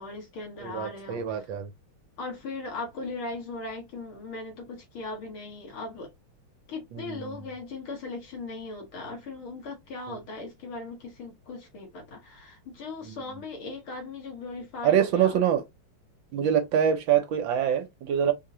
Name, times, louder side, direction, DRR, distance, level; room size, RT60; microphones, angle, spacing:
voice 1, 0.0-1.5 2.2-6.1 6.7-15.4, left 3 dB, 75° left, 2.5 m, -38 dB
voice 2, 0.6-1.7 6.9-7.2 10.1-10.2 13.1-13.2 14.8-15.6 16.3-18.3, right 9 dB, 70° right, 1.3 m, -25 dB
4.8 x 2.8 x 2.7 m
omnidirectional pair, 2.3 m